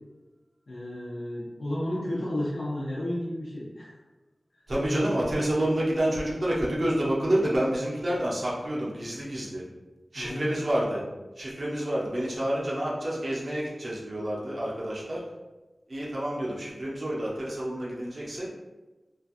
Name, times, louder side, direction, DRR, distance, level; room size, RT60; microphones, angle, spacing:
voice 1, 0.7-3.9 4.8-5.0 10.1-10.6, left 1 dB, 80° left, -8 dB, 0.7 m, -32 dB
voice 2, 4.7-9.6 10.1-11.0 11.4-15.2 15.9-18.5, right 1 dB, 60° right, -6 dB, 0.9 m, -28 dB
3.2 x 2.4 x 2.5 m, 1.1 s
wide cardioid pair, 70°, 0 cm